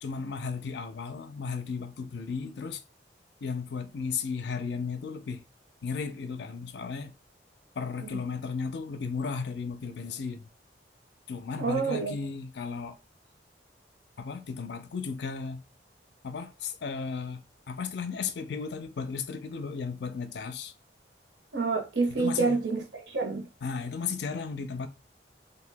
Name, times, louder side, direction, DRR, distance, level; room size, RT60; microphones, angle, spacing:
voice 1, 0.0-2.8 3.4-5.4 5.8-7.1 7.8-10.4 11.3-13.0 14.2-15.6 16.2-17.4 17.7-20.7 22.2-22.6 23.6-24.9, left 5 dB, 70° left, 0.4 m, -35 dB
voice 2, 11.6-12.1 21.5-23.5, right 4 dB, 75° right, 0.8 m, -28 dB
2.8 x 2.2 x 3.3 m
head